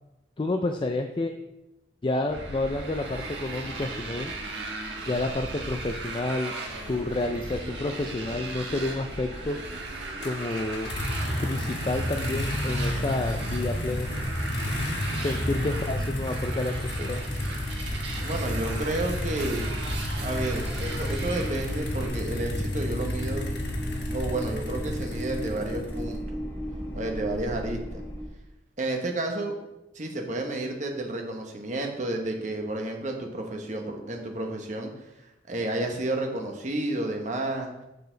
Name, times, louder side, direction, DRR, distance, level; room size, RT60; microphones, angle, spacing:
voice 1, 0.4-1.3 2.0-4.3 5.1-6.5 6.9-9.6 10.2-10.9 11.4-14.1 15.2-17.2, left 2 dB, 30° left, 5 dB, 0.4 m, -29 dB
Motorcycle, 2.3-22.1, right 2 dB, 75° right, 1.5 m, -37 dB
sound 1, 10.2-26.2, left 1 dB, 70° left, 1.3 m, -31 dB
sound 2, 16.7-28.3, equal, 10° left, 2.2 m, -37 dB
voice 2, 18.2-19.7 20.2-23.4 24.1-26.2 27.0-28.0 28.8-29.5 29.9-34.9 35.5-37.7, right 2 dB, 45° right, 2 dB, 1.1 m, -31 dB
6.7 x 6.7 x 3.9 m, 0.93 s
head